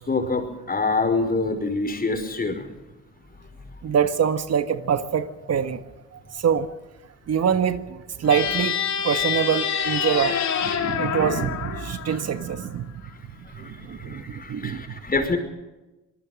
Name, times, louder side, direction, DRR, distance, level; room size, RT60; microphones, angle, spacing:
voice 1, 0.1-2.7 10.9-11.1 13.6-15.4, left 3 dB, 30° left, 6 dB, 5.4 m, -26 dB
voice 2, 3.8-5.8 6.1-6.7 7.3-15.0, right 8 dB, 55° right, 9 dB, 1.5 m, -25 dB
sound 1, 8.2-12.7, left 8 dB, 65° left, 3.6 m, -27 dB
26.0 x 19.5 x 6.4 m, 1.1 s
cardioid pair, 90°, 30 cm